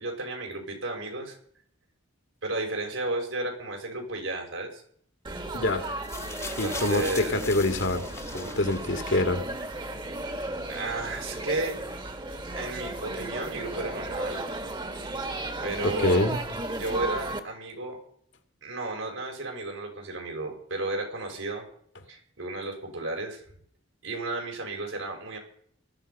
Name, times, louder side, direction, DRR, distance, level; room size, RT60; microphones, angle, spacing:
voice 1, 0.0-1.4 2.4-4.8 6.6-7.4 8.4-8.5 10.7-11.8 12.5-14.4 15.6-16.3 16.7-18.0 18.6-21.7 22.1-23.4 24.0-25.4, right 2 dB, 85° right, 2 dB, 5.5 m, -33 dB
Laughter / Chatter / Crowd, 5.2-17.4, right 2 dB, 25° right, 1.4 m, -35 dB
voice 2, 5.5-5.9 6.6-8.1 8.3-9.4 15.8-16.4, left 2 dB, 65° left, 7 dB, 2.0 m, -25 dB
sound 1, 6.0-9.3 10.2-10.3, left 3 dB, 15° left, 1.1 m, -40 dB
19.0 x 13.0 x 5.5 m, 0.62 s
head